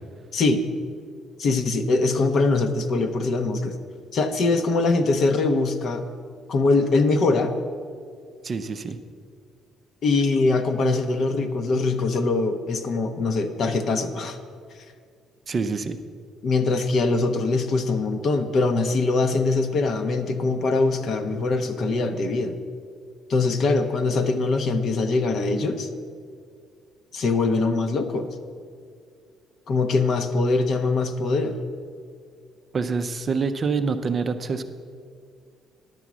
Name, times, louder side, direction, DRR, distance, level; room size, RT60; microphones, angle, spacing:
voice 1, 0.3-0.6 1.4-3.8 4.1-6.0 6.5-7.5 10.0-14.4 16.4-22.6 23.3-25.9 27.1-28.4 29.7-31.5, left 3 dB, 45° left, 8 dB, 0.7 m, -22 dB
voice 2, 8.4-9.0 15.5-16.0 32.7-34.6, right 4 dB, 30° right, 8 dB, 0.4 m, -26 dB
10.5 x 7.0 x 6.1 m, 2.1 s
cardioid pair, 160°, 0 cm